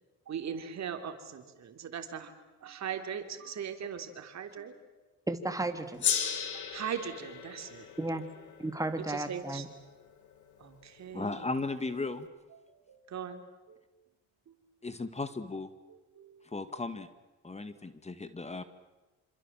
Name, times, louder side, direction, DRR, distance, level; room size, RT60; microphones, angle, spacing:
voice 1, 0.3-4.8 6.5-8.2 9.0-9.7 10.6-11.5 12.5-13.8 14.5-14.6 15.9-16.5 17.6-17.8, right 8 dB, 60° right, 7 dB, 3.3 m, -40 dB
voice 2, 5.3-6.1 8.0-8.2 8.6-9.7, right 2 dB, 10° right, 7 dB, 2.8 m, -33 dB
Gong, 6.0-10.7, left 8 dB, 75° left, 3.5 m, -36 dB
voice 3, 11.1-12.3 14.8-15.7 16.5-17.1 17.4-18.6, left 3 dB, 20° left, 11 dB, 1.9 m, -36 dB
27.0 x 27.0 x 7.5 m, 1.1 s
cardioid pair, 90°, 30 cm